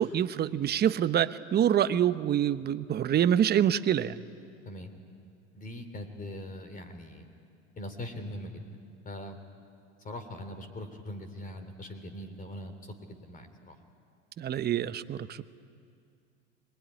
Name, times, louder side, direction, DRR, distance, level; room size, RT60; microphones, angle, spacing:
voice 1, 0.0-4.2 14.4-15.4, right 10 dB, 30° right, 13 dB, 0.9 m, -26 dB
voice 2, 5.5-7.3 7.8-8.6 9.0-9.4 10.0-13.8, left 1 dB, 25° left, 8 dB, 3.3 m, -41 dB
25.0 x 21.5 x 9.8 m, 2.4 s
hypercardioid pair, 100°, 35 cm